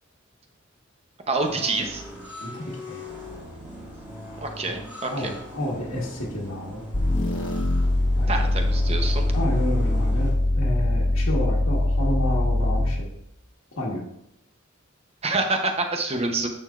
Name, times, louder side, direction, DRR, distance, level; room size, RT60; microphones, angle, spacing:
voice 1, 1.3-2.0 4.4-5.3 8.3-9.2 15.2-16.5, right 3 dB, 30° right, 4 dB, 0.8 m, -27 dB
sound 1, 1.4-10.3, equal, 5° right, 3.0 m, -40 dB
voice 2, 2.4-3.1 4.7-4.9 5.1-6.8 8.2-8.5 9.3-13.1 13.8-14.0 16.2-16.3, left 1 dB, 85° left, -4 dB, 1.5 m, -30 dB
sound 2, 6.9-13.1, left 1 dB, 60° left, 1.2 m, -22 dB
9.6 x 6.6 x 2.5 m, 0.77 s
head